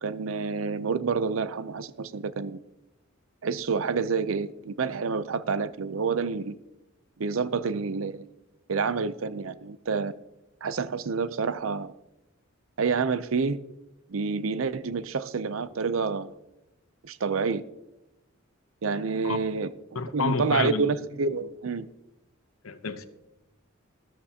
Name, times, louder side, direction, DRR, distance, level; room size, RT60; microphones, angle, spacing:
voice 1, 0.0-2.6 3.4-6.6 7.2-8.3 8.7-10.1 10.6-11.9 12.8-13.6 14.1-16.3 17.0-17.6 18.8-19.7 20.1-21.9, right 5 dB, 75° right, 0.6 m, -28 dB
voice 2, 19.9-20.9 22.6-23.1, left 4 dB, 85° left, 0.9 m, -29 dB
13.5 x 13.0 x 2.9 m
head